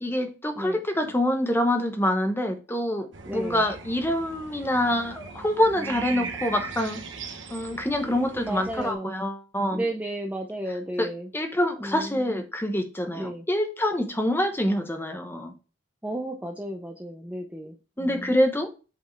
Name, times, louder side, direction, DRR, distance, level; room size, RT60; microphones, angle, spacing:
voice 1, 0.0-3.1 3.3-7.0 7.5-9.8 11.0-11.1 11.3-15.5 18.0-18.7, left 1 dB, 10° left, 0.9 m, -26 dB
sound 1, 3.1-8.9, right 5 dB, 65° right, 1.0 m, -39 dB
voice 2, 3.2-3.6 5.8-6.3 8.0-9.2 9.7-11.3 11.8-12.4 13.1-13.5 16.0-18.4, right 1 dB, 10° right, 0.5 m, -34 dB
8.2 x 4.3 x 3.3 m
head